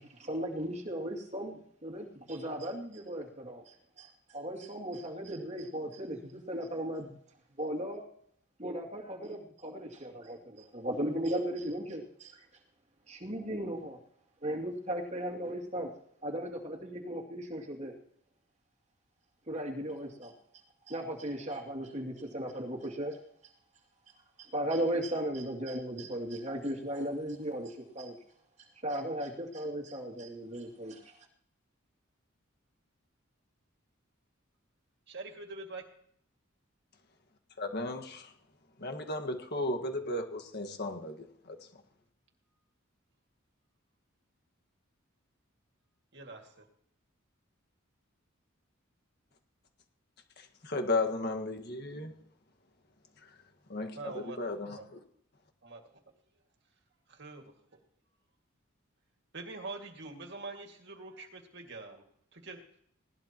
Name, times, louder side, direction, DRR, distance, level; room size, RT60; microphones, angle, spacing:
voice 1, 0.0-7.1 7.6-8.0 8.6-12.4 13.1-14.0 14.4-15.9 16.2-17.9 19.5-20.3 20.9-23.2 24.4-28.2 28.6-31.2, right 1 dB, 35° right, 0 dB, 2.5 m, -36 dB
voice 2, 35.1-35.8 46.1-46.7 54.0-54.9 55.6-55.8 57.1-57.5 59.3-62.0 62.3-62.6, right 3 dB, 55° right, 3 dB, 2.2 m, -44 dB
voice 3, 37.6-38.3 38.8-41.6 50.4-52.1 53.7-55.0, left 2 dB, 55° left, 5 dB, 1.7 m, -35 dB
20.0 x 18.0 x 3.0 m, 0.68 s
head